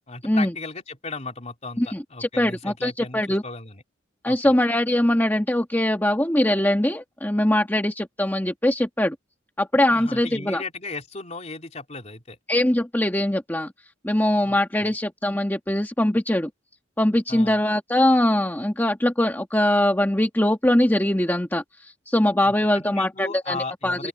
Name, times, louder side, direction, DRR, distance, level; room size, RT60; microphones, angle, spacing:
voice 1, 0.1-3.8 4.2-4.6 9.9-12.4 14.4-14.9 17.3-17.6 22.4-24.1, left 3 dB, 40° left, 3.3 m, -36 dB
voice 2, 1.8-3.4 4.2-9.1 9.6-10.6 12.5-13.7 14.0-16.5 17.0-24.1, left 1 dB, 10° left, 1.5 m, -22 dB
open air
head